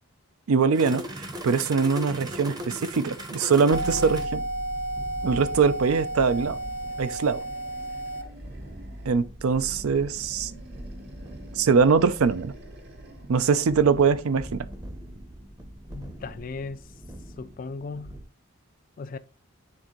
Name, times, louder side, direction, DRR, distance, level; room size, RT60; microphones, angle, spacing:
voice 1, 0.5-4.4 5.2-6.6 7.0-7.4 9.1-10.5 11.6-12.5 13.3-14.6, right 5 dB, 75° right, 0.4 m, -22 dB
sound 1, 0.7-18.2, equal, 20° right, 0.7 m, -41 dB
sound 2, 3.7-8.2, right 1 dB, 85° left, 1.0 m, -32 dB
Animal, 4.7-9.2 9.5-13.4, right 1 dB, 50° right, 0.9 m, -47 dB
voice 2, 15.9-16.9 17.4-18.2 19.0-19.2, left 4 dB, 40° left, 0.3 m, -37 dB
8.9 x 3.6 x 3.0 m
head